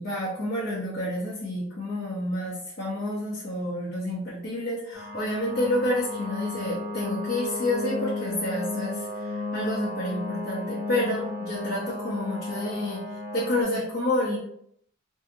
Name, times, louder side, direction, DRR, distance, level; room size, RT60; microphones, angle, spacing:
voice 1, 0.0-13.0 13.3-14.4, left 1 dB, 45° left, -8 dB, 0.7 m, -29 dB
sound 1, 4.9-13.6, left 3 dB, 10° right, 0.7 m, -34 dB
2.7 x 2.6 x 2.5 m, 0.70 s
head